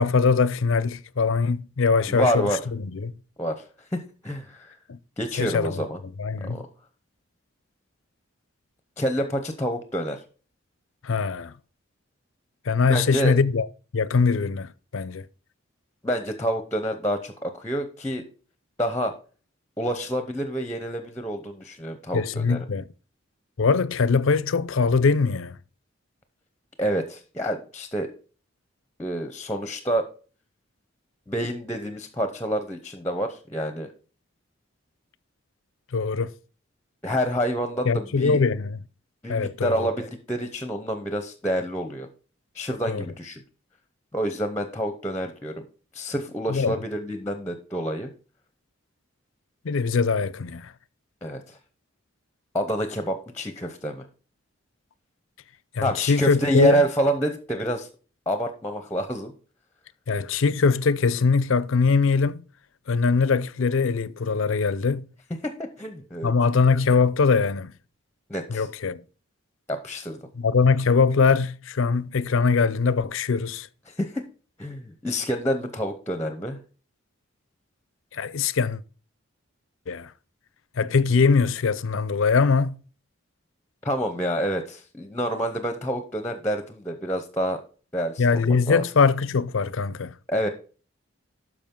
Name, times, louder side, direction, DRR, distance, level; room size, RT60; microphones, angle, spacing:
voice 1, 0.0-3.2 4.9-5.0 5.4-5.8 6.2-6.7 11.0-11.5 12.7-13.7 13.9-15.3 22.1-22.9 23.6-25.6 35.9-36.3 37.8-38.8 39.3-39.9 42.9-43.0 46.5-46.8 49.6-50.7 55.7-56.8 60.1-62.4 62.9-65.1 66.2-67.7 68.5-69.0 70.4-73.7 78.1-78.8 79.9-80.1 80.8-82.8 88.2-90.1, left 4 dB, 75° left, 0.5 m, -22 dB
voice 2, 2.1-2.6 3.4-3.6 3.9-4.8 5.2-6.0 6.4-6.7 9.0-10.2 12.9-13.3 16.0-18.2 18.8-19.1 19.8-22.6 26.8-28.1 29.0-30.1 31.3-33.9 37.0-38.4 39.2-42.1 42.5-43.4 44.1-45.7 45.9-48.1 51.2-51.6 52.5-54.0 55.8-57.9 58.3-59.3 65.4-66.3 68.3-68.7 69.7-70.2 73.9-74.2 74.6-76.6 83.8-87.6 87.9-88.8 90.3-90.5, equal, 10° left, 0.7 m, -28 dB
12.5 x 4.9 x 3.7 m
head